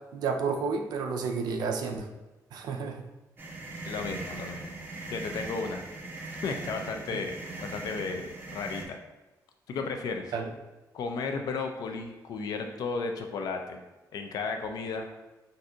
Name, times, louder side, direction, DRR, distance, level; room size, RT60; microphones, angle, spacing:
voice 1, 0.1-2.1 2.5-3.0 7.1-7.2 10.3-10.5, right 5 dB, 80° right, 4 dB, 0.4 m, -31 dB
sound 1, 3.4-8.8, right 2 dB, 30° right, 0.5 m, -40 dB
voice 2, 3.8-5.8 6.4-9.0 9.7-10.3 10.9-13.8 14.1-15.1, left 4 dB, 70° left, 5 dB, 0.4 m, -34 dB
2.6 x 2.2 x 3.7 m, 1.1 s
cardioid pair, 145°, 7 cm